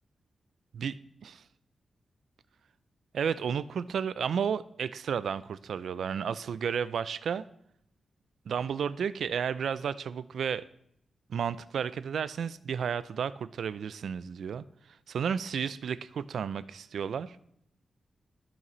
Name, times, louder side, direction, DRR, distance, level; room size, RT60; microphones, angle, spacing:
voice 1, 3.1-7.5 8.5-10.7 11.3-17.4, right 7 dB, 75° right, 16 dB, 0.3 m, -32 dB
13.5 x 5.8 x 3.1 m, 0.73 s
wide cardioid pair, 180°, 0 cm